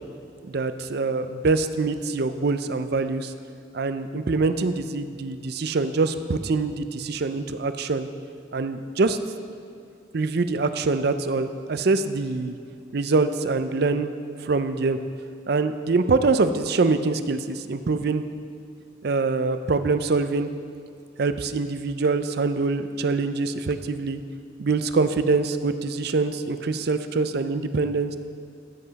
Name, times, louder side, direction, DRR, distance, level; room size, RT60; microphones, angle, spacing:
voice 1, 0.5-3.3 3.7-8.1 8.5-9.2 10.1-12.6 12.9-14.1 14.4-15.0 15.5-18.2 19.0-20.5 21.2-24.2 24.6-28.2, right 3 dB, 55° right, 10 dB, 0.5 m, -24 dB
15.0 x 7.8 x 4.1 m, 2.4 s
head